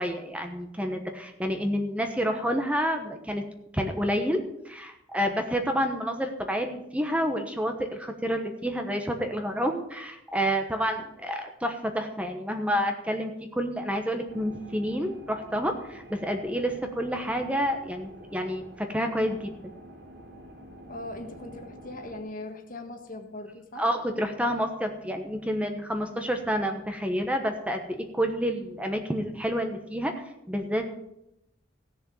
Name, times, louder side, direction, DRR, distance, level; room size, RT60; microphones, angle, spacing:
voice 1, 0.0-3.4 3.7-19.5 23.8-30.1 30.5-31.0, equal, 5° right, 5 dB, 1.1 m, -29 dB
sound 1, 14.3-22.2, right 1 dB, 55° right, 2.8 m, -48 dB
voice 2, 20.9-23.8, left 2 dB, 45° left, 5 dB, 1.6 m, -40 dB
16.0 x 6.8 x 7.0 m, 0.84 s
head